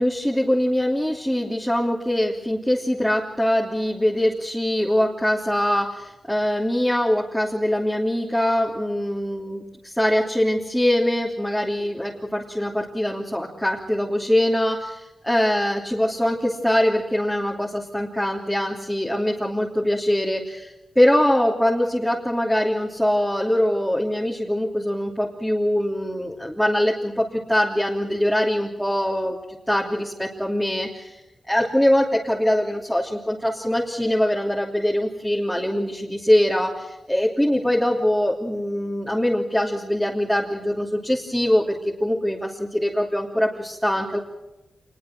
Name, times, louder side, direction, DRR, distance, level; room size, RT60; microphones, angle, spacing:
voice 1, 0.0-29.4 29.7-31.2 31.5-44.2, left 1 dB, ahead, -4 dB, 3.0 m, -23 dB
26.5 x 21.0 x 6.2 m, 0.96 s
cardioid pair, 80°, 0 cm